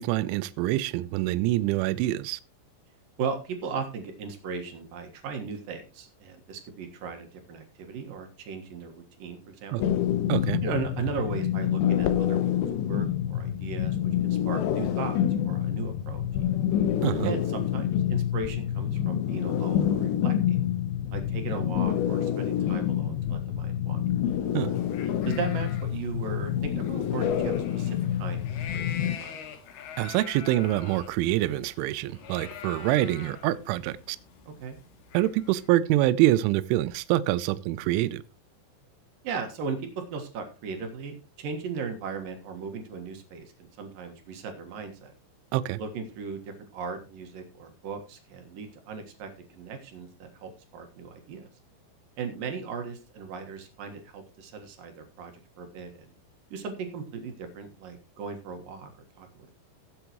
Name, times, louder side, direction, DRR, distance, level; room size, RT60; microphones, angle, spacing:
voice 1, 0.0-2.4 9.7-9.8 10.3-10.6 17.0-17.3 24.5-24.7 30.0-34.2 35.1-38.2 45.5-45.8, right 15 dB, 80° right, 3.1 m, -25 dB
voice 2, 3.2-9.9 10.6-16.7 17.2-20.7 21.1-24.2 25.3-29.4 34.5-34.8 39.2-45.1 45.8-51.5 52.2-55.9 56.5-58.9 59.2-59.5, right 5 dB, 60° right, 2.5 m, -37 dB
sound 1, 9.8-29.2, left 10 dB, 85° left, 2.1 m, -27 dB
sound 2, 24.8-35.7, left 7 dB, 65° left, 3.0 m, -45 dB
17.0 x 8.3 x 3.0 m
omnidirectional pair, 5.7 m